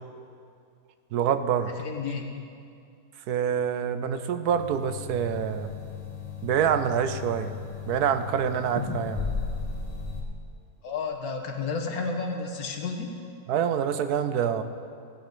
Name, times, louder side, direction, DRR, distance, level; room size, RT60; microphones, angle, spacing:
voice 1, 1.1-1.7 3.3-5.7 6.4-7.5 7.9-9.2 13.5-14.6, right 8 dB, 85° right, 10 dB, 1.2 m, -26 dB
voice 2, 1.8-2.3 10.8-13.2, left 4 dB, 75° left, 3 dB, 1.7 m, -31 dB
sound 1, 4.5-10.2, left 5 dB, 25° left, 1.6 m, -35 dB
16.0 x 9.9 x 5.3 m, 2.4 s
omnidirectional pair, 1.6 m